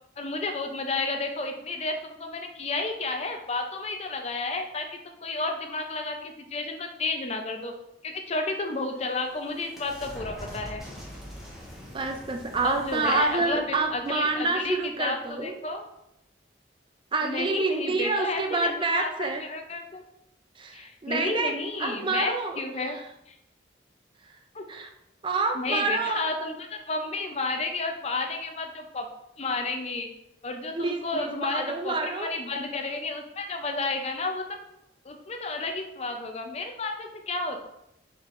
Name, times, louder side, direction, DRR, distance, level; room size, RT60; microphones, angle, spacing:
voice 1, 0.2-7.7 8.0-10.8 12.6-15.8 17.2-20.0 20.7-23.0 23.3-23.4 24.5-24.6 25.5-29.1 29.4-30.1 30.4-34.4 35.0-37.6, left 3 dB, 35° left, 5 dB, 0.5 m, -32 dB
sound 1, 8.6-15.1, equal, ahead, 1.0 m, -45 dB
voice 2, 11.9-15.5 17.1-19.4 20.6-21.5 21.8-22.6 22.9-23.0 24.7-24.9 25.2-26.3 30.7-32.3, right 3 dB, 25° right, 5 dB, 0.4 m, -28 dB
4.6 x 4.6 x 2.5 m, 0.83 s
head